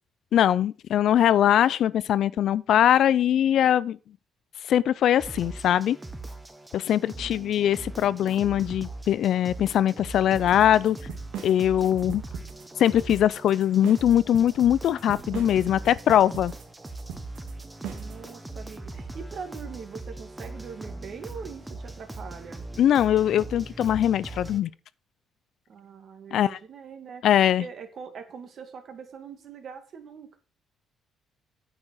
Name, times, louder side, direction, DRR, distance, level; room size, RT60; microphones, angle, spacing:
voice 1, 0.3-4.0 4.6-6.0 6.7-11.0 11.4-12.2 12.8-16.5 22.8-24.7 26.3-26.6 27.2-27.6, left 10 dB, 65° left, 0.5 m, -21 dB
sound 1, 5.2-24.6, right 2 dB, 10° right, 1.2 m, -40 dB
voice 2, 7.2-7.6 17.9-22.6 25.7-27.3 27.6-30.4, right 6 dB, 50° right, 2.1 m, -42 dB
sound 2, 10.3-18.2, right 8 dB, 85° right, 2.0 m, -40 dB
9.7 x 6.9 x 6.3 m
cardioid pair, 140°, 0 cm